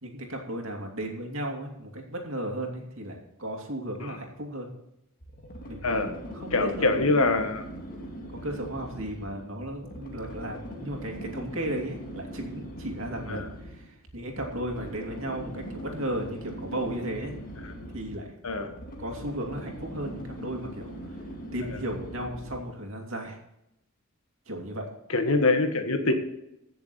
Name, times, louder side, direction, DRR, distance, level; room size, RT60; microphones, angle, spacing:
voice 1, 0.0-4.7 5.7-6.9 7.1-7.5 8.4-17.3 17.9-18.4 19.0-21.2 21.5-23.4 24.5-24.9, right 1 dB, 65° right, 1 dB, 2.7 m, -35 dB
sound 1, 5.2-22.8, equal, 40° left, 2.1 m, -41 dB
voice 2, 6.5-7.6 13.3-13.4 18.4-18.7 25.1-26.1, left 3 dB, 75° left, 7 dB, 1.5 m, -24 dB
16.0 x 7.0 x 4.3 m, 0.84 s
head